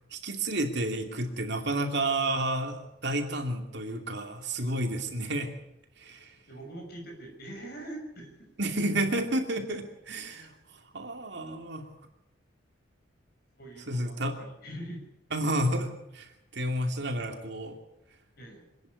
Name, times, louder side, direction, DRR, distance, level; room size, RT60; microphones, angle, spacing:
voice 1, 0.1-5.5 6.0-6.3 8.6-10.5 10.9-11.9 13.9-14.4 15.3-17.7, right 1 dB, 55° right, 4 dB, 2.7 m, -31 dB
voice 2, 6.5-8.4 13.6-15.1 18.4-18.7, right 1 dB, 50° left, 2 dB, 6.2 m, -43 dB
26.5 x 10.5 x 9.5 m, 0.82 s
head